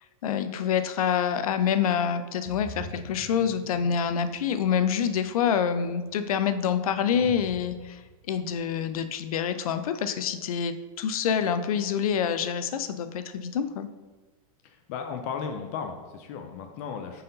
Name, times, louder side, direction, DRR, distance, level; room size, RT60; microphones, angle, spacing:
voice 1, 0.2-8.0 8.3-13.9, left 8 dB, 80° left, 10 dB, 0.6 m, -27 dB
sound 1, 2.5-8.4, right 1 dB, 40° right, 1.0 m, -45 dB
voice 2, 14.6-17.2, left 6 dB, 25° left, 5 dB, 0.3 m, -35 dB
7.6 x 4.2 x 3.9 m, 1.3 s
supercardioid pair, 175°, 18 cm